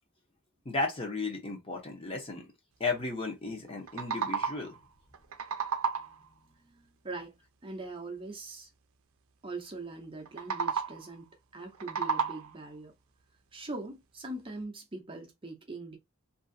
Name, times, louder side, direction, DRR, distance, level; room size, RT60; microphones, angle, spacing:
voice 1, 0.7-2.5 2.8-4.8 6.7-6.8, left 3 dB, 25° left, 0.8 m, -34 dB
wooden frog e, 3.7-4.8 5.1-6.3 10.3-11.1 11.6-12.7, right 6 dB, 70° right, 0.5 m, -33 dB
voice 2, 7.0-7.4 7.6-8.7 9.4-12.9 13.5-16.0, right 2 dB, 25° right, 0.6 m, -41 dB
2.9 x 2.6 x 2.6 m
head